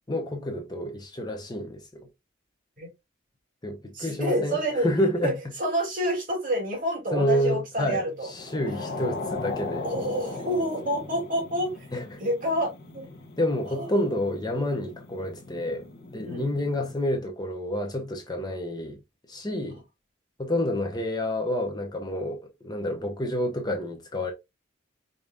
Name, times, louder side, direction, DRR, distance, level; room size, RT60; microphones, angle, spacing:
voice 1, 0.1-2.1 3.6-5.4 7.1-9.9 11.9-12.2 13.4-15.9 16.1-19.0 19.3-19.8 20.4-24.3, left 1 dB, 20° left, 0.8 m, -29 dB
voice 2, 3.9-4.9 5.2-5.3 5.6-8.3 8.8-9.1 9.8-11.9 12.2-13.0 13.7-13.9 16.2-16.5 20.5-20.6, equal, 45° right, 2.6 m, -28 dB
sound 1, 8.2-17.0, left 3 dB, 50° left, 1.1 m, -39 dB
5.2 x 3.8 x 2.4 m
head